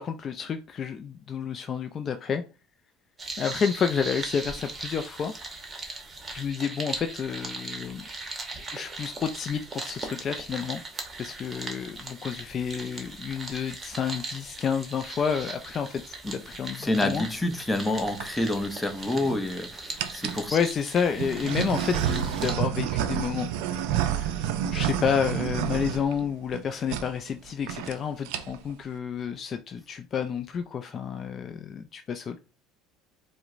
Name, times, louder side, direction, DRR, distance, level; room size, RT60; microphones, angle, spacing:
voice 1, 0.0-2.4 3.4-5.3 6.3-8.0 8.7-10.8 11.2-17.3 20.5-32.4, left 7 dB, 40° left, 0.3 m, -30 dB
sound 1, 3.2-22.5, right 3 dB, 25° right, 0.9 m, -39 dB
voice 2, 16.8-20.6, left 2 dB, 10° left, 0.7 m, -28 dB
sound 2, 17.9-18.3 19.0-19.5 20.0-20.4 21.2-26.6 26.9-27.1 27.4-27.5 27.7-27.9 28.2-28.7, right 10 dB, 80° right, 0.3 m, -29 dB
4.4 x 2.0 x 2.5 m
supercardioid pair, 90°, 0 cm